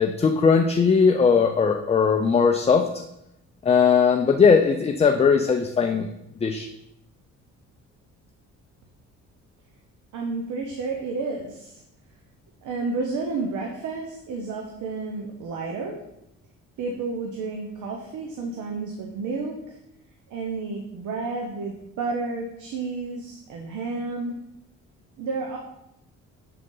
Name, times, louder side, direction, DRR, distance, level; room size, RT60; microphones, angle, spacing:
voice 1, 0.0-2.9 3.6-6.1 6.4-6.7, left 5 dB, 20° left, 4 dB, 0.4 m, -19 dB
voice 2, 10.1-11.8 12.6-15.9 16.8-19.8 20.3-24.4 25.2-25.6, right 3 dB, 80° right, 0 dB, 0.9 m, -31 dB
6.7 x 3.7 x 3.8 m, 0.84 s
cardioid pair, 90°, 30 cm